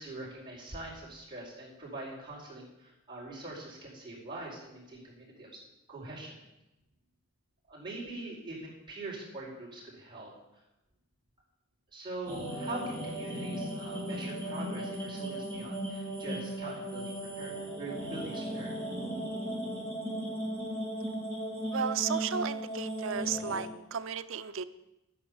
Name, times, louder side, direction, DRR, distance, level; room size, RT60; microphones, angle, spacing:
voice 1, 0.0-5.6 5.9-6.4 7.7-10.3 11.9-18.8, right 2 dB, 20° right, -6 dB, 4.7 m, -43 dB
sound 1, 12.3-23.6, right 1 dB, 10° left, 4.9 m, -36 dB
voice 2, 21.7-24.6, right 7 dB, 65° right, 12 dB, 0.6 m, -34 dB
12.0 x 9.6 x 7.1 m, 0.96 s
head